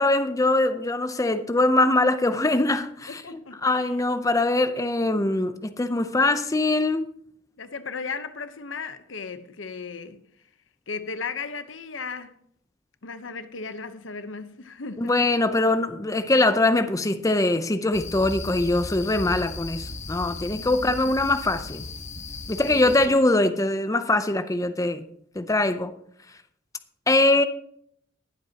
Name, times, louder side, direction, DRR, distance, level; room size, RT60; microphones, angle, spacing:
voice 1, 0.0-7.0 15.0-21.9 22.5-25.0 25.4-25.9 27.1-27.5, left 2 dB, 15° left, 0.6 m, -22 dB
voice 2, 3.1-4.0 7.6-10.2 10.9-12.3 13.0-15.3 20.6-20.7 22.6-23.2, left 4 dB, 90° left, 1.0 m, -36 dB
sound 1, 17.9-23.1, left 3 dB, 40° left, 0.9 m, -36 dB
20.5 x 8.0 x 2.9 m
head